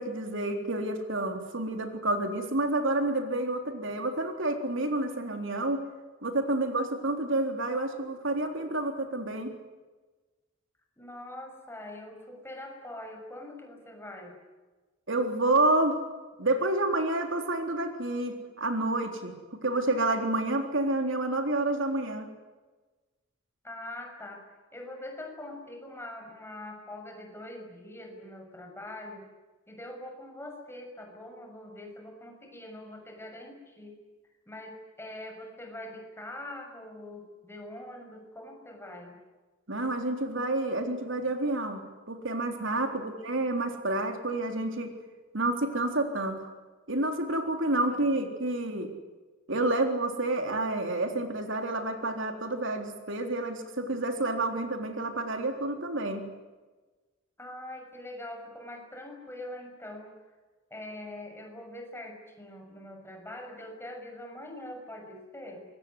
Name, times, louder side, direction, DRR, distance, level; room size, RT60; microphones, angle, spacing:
voice 1, 0.0-5.8 6.2-9.5 15.1-16.0 16.4-19.3 19.6-22.3 39.7-41.8 42.1-44.9 45.3-46.5 46.9-48.9 49.5-56.2, right 2 dB, 65° right, 5 dB, 3.8 m, -29 dB
voice 2, 11.0-14.4 23.6-24.4 24.7-29.3 29.7-34.0 34.5-39.2 42.7-43.4 47.9-48.2 57.4-60.2 60.7-65.7, left 1 dB, 10° left, 3 dB, 6.2 m, -43 dB
25.0 x 22.0 x 9.6 m, 1.2 s
head